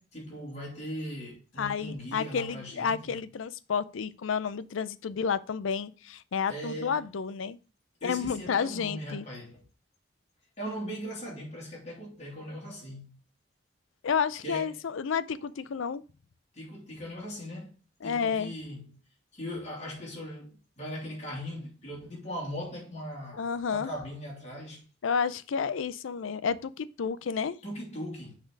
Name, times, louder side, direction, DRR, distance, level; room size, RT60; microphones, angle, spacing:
voice 1, 0.0-3.2 6.5-7.0 8.0-9.6 10.6-13.1 14.4-14.8 16.5-17.7 18.0-19.0 19.3-23.4 23.7-24.8 27.6-28.3, equal, 35° left, 2.8 m, -39 dB
voice 2, 1.6-7.6 8.0-9.2 14.0-16.0 18.0-18.5 23.3-23.9 25.0-27.6, left 6 dB, 85° left, 0.5 m, -31 dB
6.3 x 4.3 x 4.6 m
head